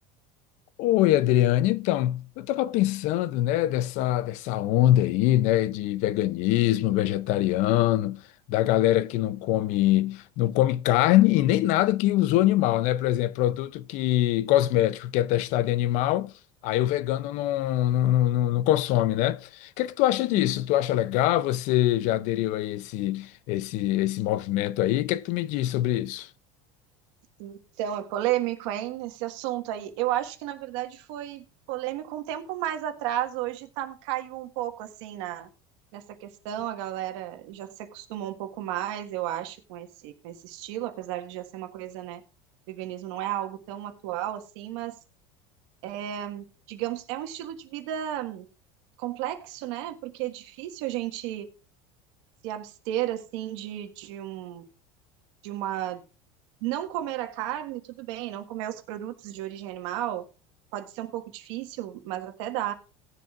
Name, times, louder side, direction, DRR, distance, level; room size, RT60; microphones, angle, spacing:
voice 1, 0.8-8.2 8.5-16.3 16.6-26.3, left 14 dB, 55° left, 0.5 m, -23 dB
voice 2, 27.4-35.5 35.9-42.2 42.7-45.0 45.8-48.5 49.0-51.5 52.4-54.6 55.4-56.0 56.6-60.2 60.7-62.7, right 12 dB, 75° right, 1.5 m, -33 dB
19.0 x 7.5 x 2.4 m
cardioid pair, 155°, 15 cm